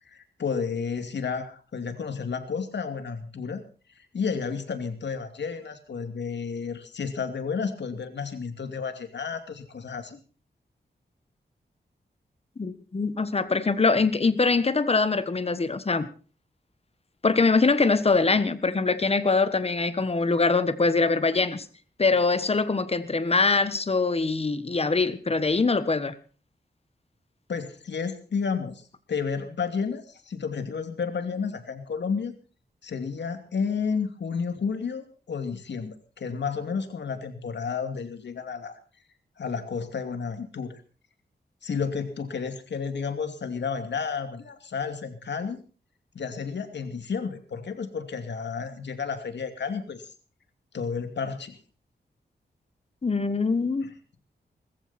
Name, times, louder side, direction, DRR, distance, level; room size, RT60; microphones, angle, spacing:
voice 1, 0.1-3.6 4.0-10.2 27.5-32.3 32.8-38.8 39.4-40.8 41.6-45.6 46.1-50.0 50.7-51.6 53.8-53.9, left 5 dB, 80° left, 2.6 m, -31 dB
voice 2, 12.6-16.1 17.2-21.6 22.0-26.1 53.0-53.9, left 3 dB, 35° left, 1.3 m, -23 dB
20.0 x 14.5 x 4.3 m
wide cardioid pair, 120°, 18 cm